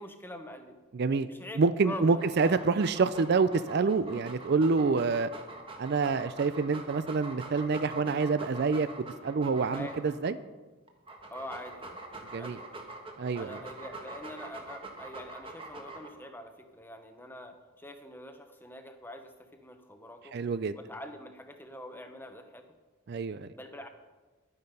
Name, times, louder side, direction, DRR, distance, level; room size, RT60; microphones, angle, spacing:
voice 1, 0.0-0.8 1.3-2.4 9.7-10.0 11.3-12.0 12.3-12.8 13.3-20.4 20.7-22.7 23.5-23.9, left 1 dB, 10° left, 6 dB, 0.8 m, -45 dB
voice 2, 0.9-1.3 1.6-5.3 5.8-8.9 9.2-10.3 12.3-12.6 13.2-13.6 20.3-20.7 23.1-23.5, right 4 dB, 50° right, 14 dB, 0.4 m, -27 dB
Dog, 2.2-10.3 10.9-16.3, right 2 dB, 25° right, 1.3 m, -45 dB
11.5 x 9.6 x 5.3 m, 1.3 s
head